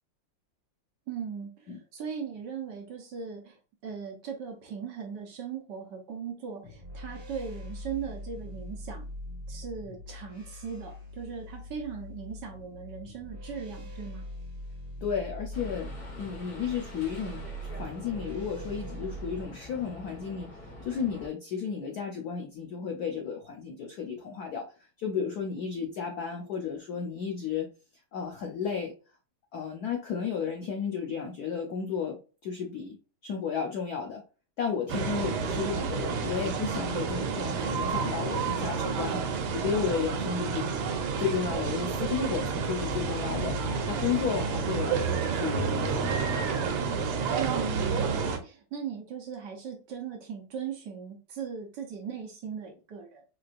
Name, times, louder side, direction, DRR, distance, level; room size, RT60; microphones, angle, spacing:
voice 1, 1.1-9.1 9.5-14.3 47.4-53.2, right 7 dB, 60° right, 1 dB, 1.2 m, -38 dB
sound 1, 6.6-19.4, equal, 30° right, 0.8 m, -42 dB
voice 2, 15.0-15.9 16.2-20.5 20.8-27.7 28.1-28.9 29.5-33.0 33.2-34.2 34.6-39.2 39.5-40.7 41.2-43.6 43.9-46.2, left 6 dB, 85° left, 2 dB, 0.8 m, -33 dB
sound 2, 15.5-21.3, left 2 dB, 50° left, 2.1 m, -46 dB
sound 3, 34.9-48.4, right 5 dB, 85° right, 1.6 m, -30 dB
4.6 x 2.5 x 2.5 m, 0.34 s
omnidirectional pair, 2.4 m